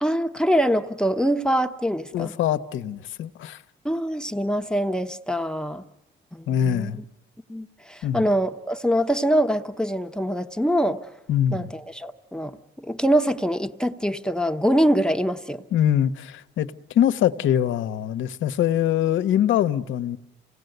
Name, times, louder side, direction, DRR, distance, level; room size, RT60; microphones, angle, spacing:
voice 1, 0.0-2.3 3.8-5.8 6.3-6.9 7.5-11.0 11.5-15.6, equal, 5° left, 0.8 m, -24 dB
voice 2, 2.1-3.6 6.5-7.0 8.0-8.3 11.3-11.7 15.7-20.2, left 10 dB, 75° left, 0.8 m, -23 dB
27.5 x 17.5 x 7.9 m
cardioid pair, 90°, 20 cm